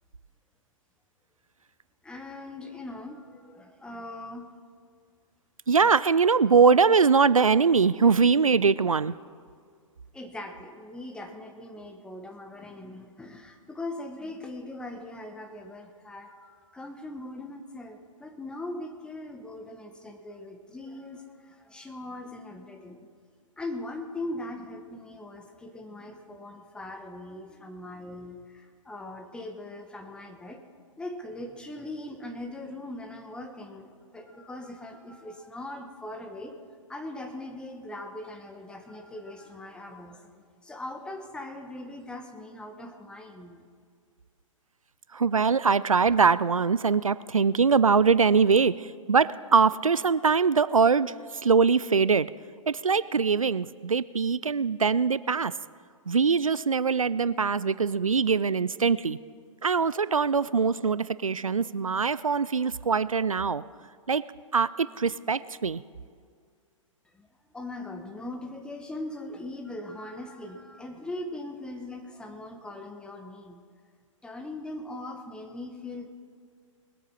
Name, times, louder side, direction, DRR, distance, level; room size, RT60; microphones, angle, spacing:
voice 1, 2.0-4.5 10.1-23.0 23.6-30.6 31.0-36.6 36.9-43.7 67.1-67.3 67.5-73.6 74.2-76.0, left 2 dB, 5° left, 5 dB, 1.1 m, -40 dB
voice 2, 5.7-9.1 45.1-51.1 51.4-52.3 52.7-55.5 56.1-59.2 59.6-63.6 64.1-64.2 64.5-65.8, right 5 dB, 85° right, 18 dB, 0.4 m, -22 dB
21.0 x 8.1 x 5.6 m, 2.1 s
figure-of-eight pair, 115°, 17 cm